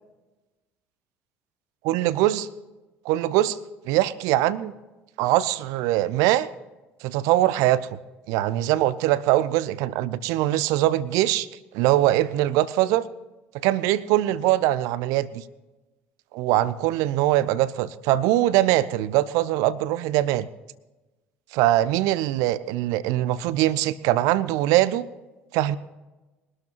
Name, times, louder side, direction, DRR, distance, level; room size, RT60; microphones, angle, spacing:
voice 1, 1.8-2.5 3.0-3.6 3.9-4.7 5.2-6.5 7.0-7.9 8.3-11.5 11.7-13.0 13.6-15.4 16.3-20.5 21.5-25.1 25.5-25.8, right 14 dB, 55° right, 18 dB, 0.6 m, -22 dB
22.5 x 12.5 x 3.1 m, 1.1 s
figure-of-eight pair, 60°, 7 cm